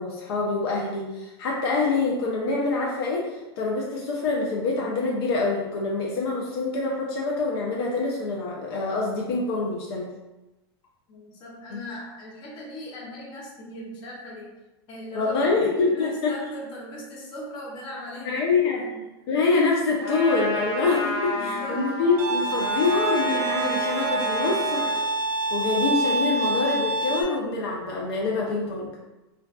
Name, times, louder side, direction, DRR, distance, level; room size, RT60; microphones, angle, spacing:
voice 1, 0.0-10.1 11.7-11.8 15.1-16.4 18.2-18.8 19.3-25.1 25.5-28.9, left 3 dB, 70° left, -2 dB, 0.5 m, -25 dB
voice 2, 11.1-14.5 14.9-18.4 18.8-19.0 21.3-21.9, equal, 35° left, -4 dB, 0.7 m, -39 dB
Trumpet, 20.0-25.0, equal, 55° left, 1.0 m, -30 dB
Bowed string instrument, 22.2-27.2, right 2 dB, 60° right, 0.4 m, -26 dB
2.5 x 2.3 x 2.2 m, 1.0 s
supercardioid pair, 145°, 14 cm